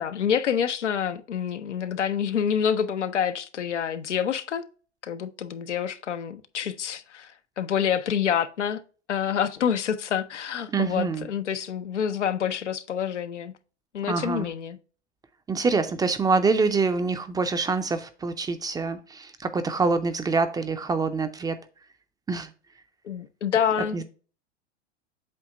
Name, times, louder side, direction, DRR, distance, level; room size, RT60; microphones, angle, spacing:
voice 1, 0.0-4.6 5.0-7.3 7.6-8.8 9.1-13.5 13.9-14.8 23.0-24.0, left 8 dB, 90° left, 0.7 m, -27 dB
voice 2, 10.7-11.3 14.1-14.5 15.5-21.6 22.3-22.5 23.9-24.0, right 4 dB, 10° right, 0.5 m, -25 dB
7.8 x 2.8 x 5.3 m
hypercardioid pair, 100°, 34 cm